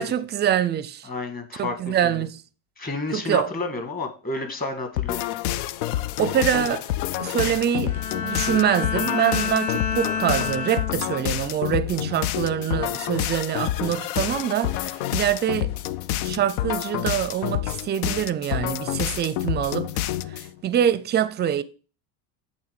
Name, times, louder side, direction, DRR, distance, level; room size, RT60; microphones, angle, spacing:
voice 1, 0.0-1.1 1.6-2.4 3.1-3.5 6.2-6.8 7.2-15.7 16.2-19.9 20.3-21.6, right 10 dB, 25° right, 0.5 m, -25 dB
voice 2, 1.0-2.3 2.8-5.2, left 3 dB, 20° left, 1.7 m, -30 dB
sound 1, 5.0-20.5, left 13 dB, 85° left, 0.6 m, -28 dB
Bowed string instrument, 7.8-11.4 11.9-12.3, left 5 dB, 55° left, 2.1 m, -29 dB
8.6 x 3.8 x 6.4 m
supercardioid pair, 130°, 42 cm